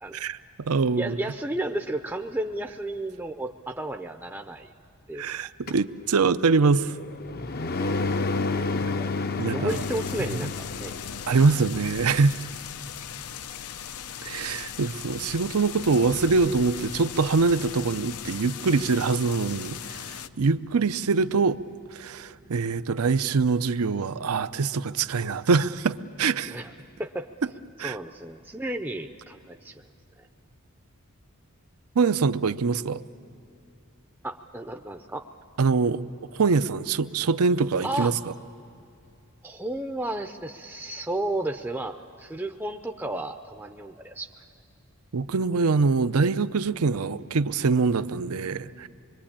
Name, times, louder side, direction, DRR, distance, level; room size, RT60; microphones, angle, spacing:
voice 1, 0.1-1.2 5.2-7.0 9.4-9.8 10.3-10.5 11.3-12.4 14.2-21.6 21.9-26.6 27.8-28.0 32.0-33.0 35.6-36.0 36.3-38.1 45.1-48.9, right 4 dB, 80° right, 0.6 m, -24 dB
voice 2, 1.0-4.7 5.1-5.5 9.0-9.1 9.5-11.0 26.5-26.7 27.0-27.3 27.8-29.8 30.2-30.3 34.2-35.3 37.8-38.1 39.4-44.3, right 1 dB, 10° right, 0.5 m, -33 dB
sound 1, 5.7-11.3, left 3 dB, 45° left, 0.6 m, -30 dB
sound 2, 9.7-20.3, left 8 dB, 85° left, 0.7 m, -38 dB
25.5 x 23.0 x 8.7 m
head